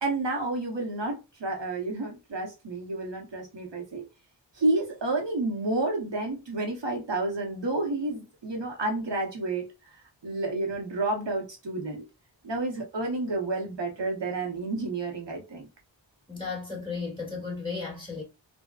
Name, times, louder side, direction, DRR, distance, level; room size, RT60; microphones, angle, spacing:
voice 1, 0.0-4.0 4.5-12.0 12.4-15.7, right 2 dB, 70° right, 0.9 m, -30 dB
voice 2, 16.3-18.2, left 4 dB, 10° left, 1.8 m, -34 dB
3.5 x 2.1 x 2.3 m
wide cardioid pair, 60°, 45 cm